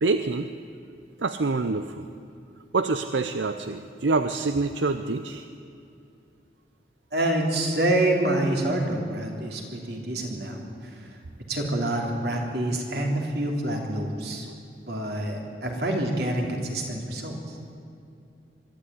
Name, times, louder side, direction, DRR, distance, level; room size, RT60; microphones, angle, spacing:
voice 1, 0.0-0.5 1.2-2.1 2.7-5.5, right 3 dB, 85° right, 9 dB, 0.7 m, -26 dB
voice 2, 7.1-10.6 10.9-11.0 11.5-14.5 14.9-17.6, right 1 dB, 60° right, 1 dB, 3.4 m, -27 dB
23.0 x 13.0 x 9.4 m, 2.5 s
head